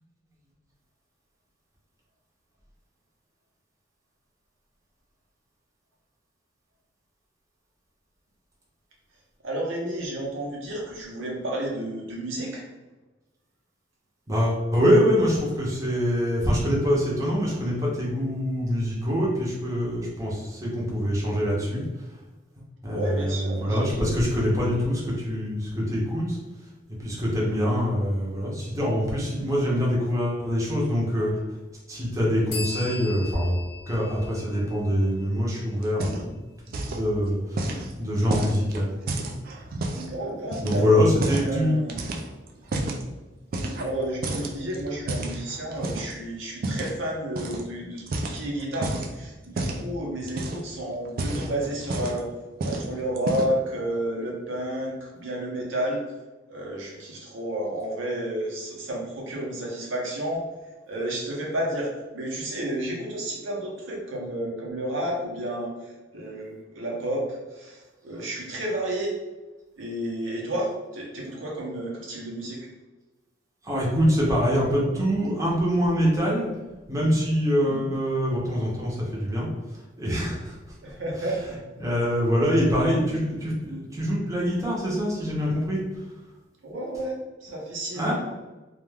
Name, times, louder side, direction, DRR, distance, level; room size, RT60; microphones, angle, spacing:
voice 1, 9.4-12.6 22.9-23.8 39.9-40.9 41.2-41.9 43.8-52.3 52.6-56.0 56.5-60.5 60.9-69.2 69.8-72.7 77.6-77.9 80.8-81.6 86.6-88.1, right 1 dB, 80° right, -2 dB, 0.7 m, -31 dB
voice 2, 14.3-22.1 22.8-26.4 27.0-31.3 31.9-33.6 33.9-36.4 36.9-39.0 40.6-41.8 73.6-76.5 76.9-80.8 81.1-81.3 81.8-86.1 87.9-88.1, equal, 15° right, -5 dB, 0.7 m, -24 dB
sound 1, 32.5-36.1, left 4 dB, 55° left, 0.7 m, -39 dB
sound 2, 35.8-36.4 36.7-37.1 37.6-40.1 40.5-41.5 41.9-43.0 43.5-44.0 44.2-46.1 46.6-46.9 47.4-47.6 48.0-49.1 49.6-49.9 50.2-50.7 51.1-52.3 52.6-52.9 53.2-53.6, right 2 dB, 50° right, 0.3 m, -31 dB
2.3 x 2.2 x 3.3 m, 1.1 s
head